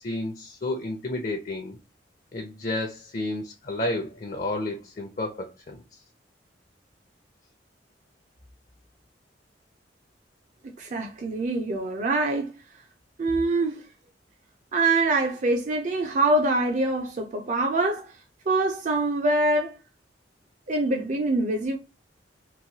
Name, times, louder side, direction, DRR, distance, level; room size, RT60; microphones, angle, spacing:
voice 1, 0.0-1.8 2.3-6.0, left 2 dB, 45° left, 0.6 m, -31 dB
voice 2, 10.8-12.5 13.2-13.8 14.7-18.1 18.5-19.8 20.7-21.8, right 2 dB, 45° right, 0.5 m, -24 dB
3.0 x 2.6 x 2.7 m
head